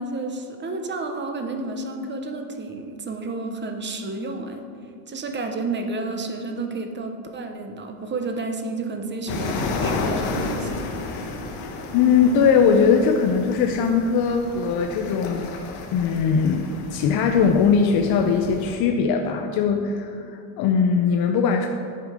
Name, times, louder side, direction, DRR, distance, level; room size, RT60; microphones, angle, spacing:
voice 1, 0.0-4.6 5.1-10.9, right 3 dB, 25° right, 5 dB, 0.8 m, -31 dB
sound 1, 9.3-18.8, left 3 dB, 75° left, 1.3 m, -32 dB
voice 2, 11.9-15.5 15.9-21.7, left 6 dB, 55° left, 3 dB, 0.7 m, -20 dB
9.6 x 5.2 x 5.0 m, 2.4 s
cardioid pair, 120°, 46 cm